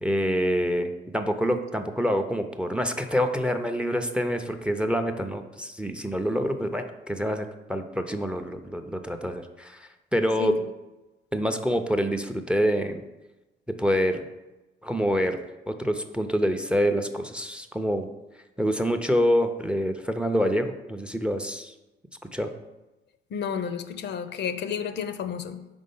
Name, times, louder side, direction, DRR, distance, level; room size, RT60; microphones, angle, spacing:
voice 1, 0.0-10.5 11.3-13.0 13.8-14.2 14.8-15.4 15.7-18.1 18.6-21.7 22.3-22.5, equal, 5° right, 8 dB, 0.4 m, -26 dB
voice 2, 23.3-25.7, left 7 dB, 60° left, 10 dB, 0.5 m, -31 dB
5.3 x 3.7 x 5.4 m, 1.1 s
cardioid pair, 90°, 20 cm